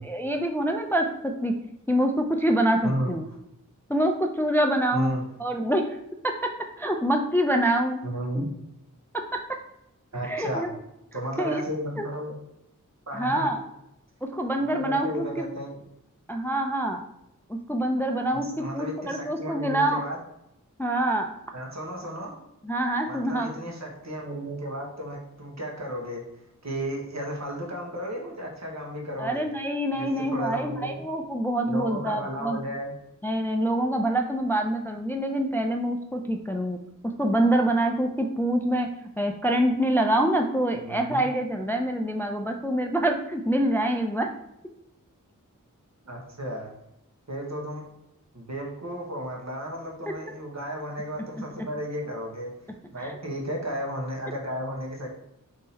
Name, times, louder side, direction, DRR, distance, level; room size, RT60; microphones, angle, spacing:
voice 1, 0.0-1.6 1.9-3.2 3.9-5.1 5.4-6.0 6.8-8.0 8.4-8.5 10.2-10.8 11.1-11.6 12.0-12.1 13.1-13.6 14.3-15.5 16.3-17.0 17.5-20.0 20.8-21.3 22.6-23.5 29.2-32.6 33.2-36.8 37.0-38.9 39.2-44.3 53.0-53.1, right 1 dB, 5° left, 3 dB, 0.3 m, -25 dB
voice 2, 2.8-3.1 4.9-5.2 8.0-8.5 10.1-10.7 11.1-12.4 13.1-13.5 14.7-15.8 18.4-20.2 21.5-22.3 23.1-26.2 26.6-29.4 30.0-31.0 31.7-32.9 40.7-41.2 46.0-46.7 47.3-47.9 48.3-52.5 52.9-55.1, equal, 55° right, -1 dB, 1.1 m, -33 dB
3.7 x 2.7 x 4.1 m, 0.84 s
wide cardioid pair, 55°, 32 cm